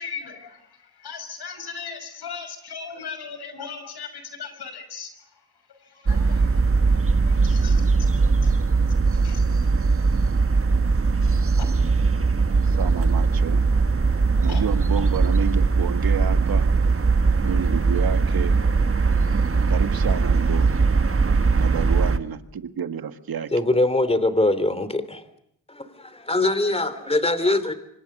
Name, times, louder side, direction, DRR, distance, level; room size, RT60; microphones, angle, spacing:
voice 1, 0.0-5.4 5.7-8.1 8.4-8.5 9.1-9.4 11.6-11.7 14.5-14.6, left 6 dB, 80° left, 9 dB, 6.2 m, -38 dB
sound 1, 6.1-22.2, right 4 dB, 35° right, 1.5 m, -20 dB
voice 2, 12.5-13.6 14.4-16.7 17.4-18.6 19.7-20.7 21.6-23.5, right 7 dB, 65° right, 9 dB, 1.8 m, -30 dB
voice 3, 23.5-25.2 25.7-27.7, left 2 dB, 15° left, 13 dB, 3.1 m, -22 dB
26.5 x 25.5 x 6.7 m, 0.75 s
cardioid pair, 65°, 39 cm